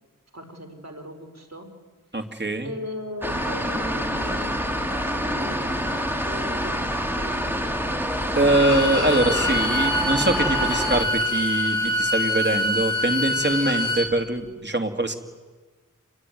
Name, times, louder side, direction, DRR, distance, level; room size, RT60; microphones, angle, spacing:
voice 1, 0.3-1.7 2.3-6.9 7.1-7.6, equal, 55° right, 5 dB, 4.8 m, -38 dB
voice 2, 2.1-2.7 8.3-15.1, right 2 dB, 35° right, 5 dB, 2.7 m, -23 dB
sound 1, 3.2-11.0, equal, 5° right, 3.2 m, -27 dB
Bowed string instrument, 8.4-14.1, left 1 dB, 65° left, 4.8 m, -25 dB
28.0 x 22.0 x 9.5 m, 1.3 s
wide cardioid pair, 60°, 32 cm